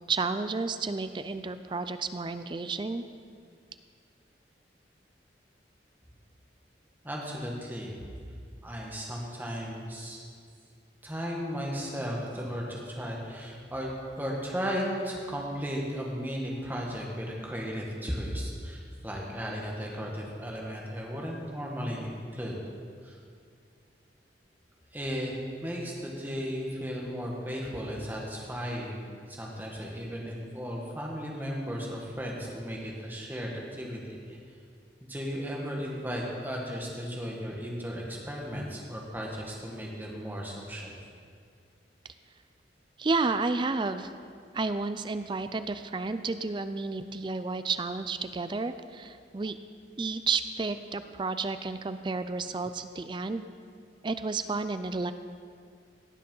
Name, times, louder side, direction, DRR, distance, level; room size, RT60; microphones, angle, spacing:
voice 1, 0.1-3.0 43.0-44.1 44.5-49.6 50.0-53.5 54.0-55.1, right 4 dB, 25° right, 11 dB, 0.4 m, -31 dB
voice 2, 7.0-8.2 8.6-10.2 11.0-22.6 23.0-23.2 24.9-34.4 35.0-40.9, equal, 10° right, -2 dB, 1.8 m, -35 dB
18.0 x 6.8 x 5.5 m, 2.2 s
head